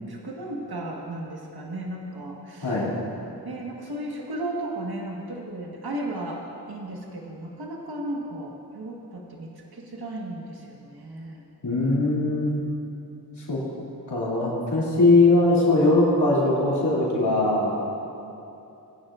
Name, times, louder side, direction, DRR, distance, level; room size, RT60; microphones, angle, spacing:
voice 1, 0.1-2.8 3.4-11.4, right 1 dB, 60° right, -1 dB, 1.5 m, -35 dB
voice 2, 2.6-2.9 11.6-12.7 13.5-13.6 14.1-17.8, left 2 dB, 75° left, -7 dB, 2.7 m, -20 dB
19.5 x 9.5 x 2.5 m, 2.9 s
cardioid pair, 40°, 41 cm